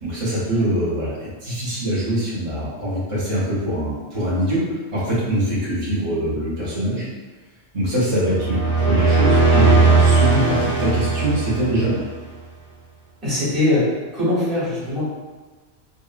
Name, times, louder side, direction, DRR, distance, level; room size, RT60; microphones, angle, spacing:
voice 1, 0.0-7.1 7.7-11.9, right 1 dB, 35° right, -10 dB, 0.8 m, -23 dB
sound 1, 8.2-12.1, right 3 dB, 80° left, 1.4 m, -17 dB
voice 2, 13.2-13.9 14.1-15.0, left 2 dB, 55° right, -10 dB, 1.4 m, -21 dB
3.8 x 2.0 x 2.4 m, 1.3 s
omnidirectional pair, 1.2 m